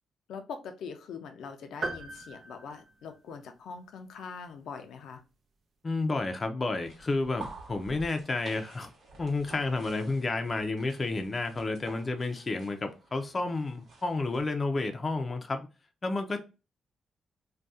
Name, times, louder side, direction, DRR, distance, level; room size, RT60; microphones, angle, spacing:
voice 1, 0.3-5.2, left 5 dB, 85° left, 0.6 m, -42 dB
sound 1, 1.8-3.6, right 3 dB, 55° right, 0.6 m, -39 dB
voice 2, 5.8-8.9 9.2-15.7 16.0-16.4, left 3 dB, 35° left, 0.5 m, -31 dB
sound 2, 6.8-14.4, right 3 dB, 70° right, 1.1 m, -50 dB
2.7 x 2.3 x 3.4 m
cardioid pair, 90°, 0 cm